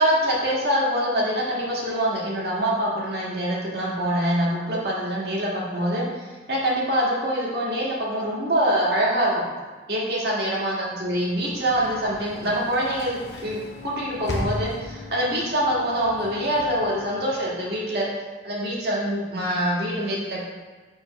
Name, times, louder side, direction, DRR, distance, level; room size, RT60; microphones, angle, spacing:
voice 1, 0.0-9.4 9.9-18.1 18.4-20.5, equal, 60° right, -5 dB, 1.7 m, -25 dB
Sliding door / Slam, 10.9-17.9, left 1 dB, 70° left, 0.9 m, -37 dB
4.9 x 3.9 x 5.9 m, 1.3 s
head